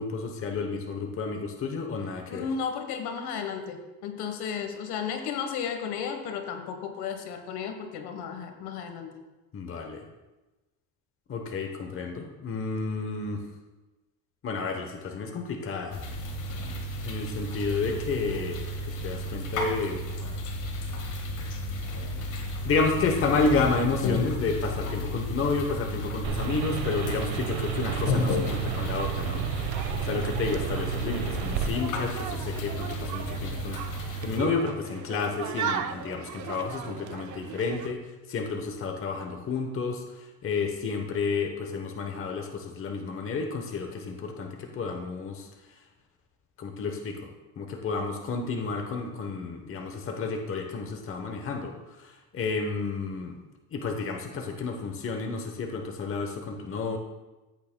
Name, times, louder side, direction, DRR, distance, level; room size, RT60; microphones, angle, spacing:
voice 1, 0.0-2.5 9.5-10.0 11.3-13.4 14.4-16.0 17.0-18.6 18.9-20.0 22.2-22.3 22.6-29.4 30.0-33.8 34.2-45.5 46.6-47.3 47.6-53.3 53.7-57.0, left 4 dB, 30° left, 4 dB, 0.9 m, -31 dB
voice 2, 2.3-9.2, left 7 dB, 70° left, 6 dB, 1.2 m, -34 dB
sound 1, 15.9-34.4, left 1 dB, 50° left, 1.6 m, -33 dB
sound 2, 26.2-31.7, right 9 dB, 70° right, 1.2 m, -32 dB
sound 3, 29.6-37.9, right 8 dB, 45° right, 0.6 m, -38 dB
14.0 x 8.5 x 2.2 m, 1.1 s
cardioid pair, 130°, 40 cm